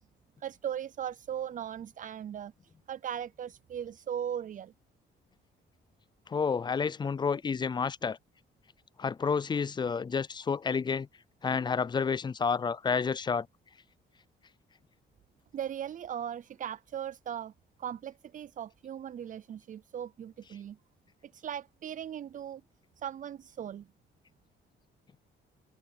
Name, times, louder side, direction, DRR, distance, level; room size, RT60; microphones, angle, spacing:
voice 1, 0.4-4.7 15.5-17.5 17.8-20.8 21.2-22.6 23.0-23.9, right 9 dB, 40° right, 0.4 m, -38 dB
voice 2, 6.3-8.2 9.0-11.1 11.4-13.5, left 5 dB, 25° left, 0.3 m, -30 dB
cardioid pair, 90°, 20 cm